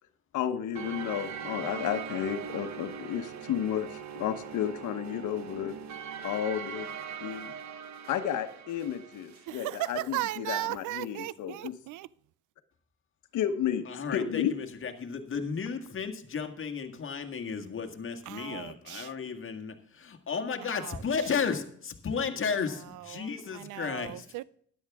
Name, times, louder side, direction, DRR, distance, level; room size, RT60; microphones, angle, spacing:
voice 1, 0.3-5.8 6.2-6.9 7.2-7.5 8.1-11.7 13.3-13.8 14.1-14.5, left 9 dB, 80° left, 1.1 m, -32 dB
sound 1, 0.7-9.5, right 7 dB, 65° right, 1.2 m, -41 dB
voice 2, 9.5-12.1 18.3-19.1 20.6-21.0 22.7-24.4, right 15 dB, 80° right, 0.5 m, -37 dB
voice 3, 13.9-24.3, left 6 dB, 45° left, 1.8 m, -34 dB
13.0 x 10.5 x 3.6 m
cardioid pair, 90°, 30 cm